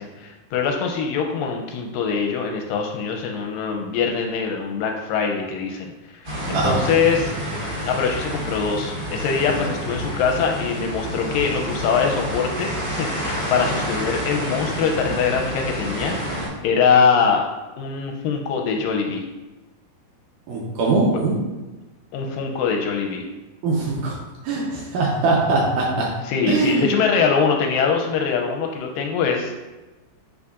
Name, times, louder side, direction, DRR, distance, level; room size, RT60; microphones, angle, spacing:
voice 1, 0.0-7.3 7.9-16.1 16.6-17.4 17.8-19.2 22.1-23.2 26.2-29.5, left 6 dB, 80° left, 2 dB, 2.1 m, -23 dB
sound 1, 6.2-16.5, equal, 35° right, 1.8 m, -28 dB
voice 2, 20.5-21.4 23.6-24.1 24.4-26.1 26.5-26.8, right 3 dB, 75° right, -3 dB, 2.0 m, -21 dB
9.6 x 4.0 x 2.4 m, 1.1 s
omnidirectional pair, 4.2 m